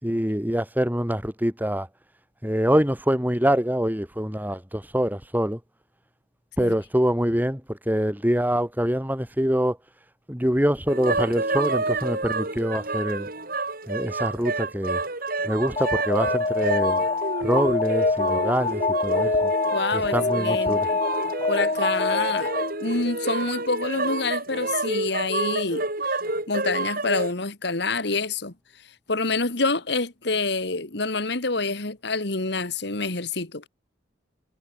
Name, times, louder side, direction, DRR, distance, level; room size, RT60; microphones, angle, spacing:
voice 1, 0.0-1.9 2.4-5.6 6.6-9.8 10.3-13.3 13.9-15.0 15.4-17.0 17.4-19.5 19.9-20.9, equal, 10° right, 2.5 m, -25 dB
sound 1, 10.9-27.3, right 3 dB, 50° right, 7.2 m, -29 dB
Alarm, 15.8-22.8, left 3 dB, 30° left, 0.7 m, -25 dB
voice 2, 19.7-20.8 21.5-22.5 22.8-25.9 26.5-28.5 29.1-33.7, left 3 dB, 65° left, 2.1 m, -27 dB
head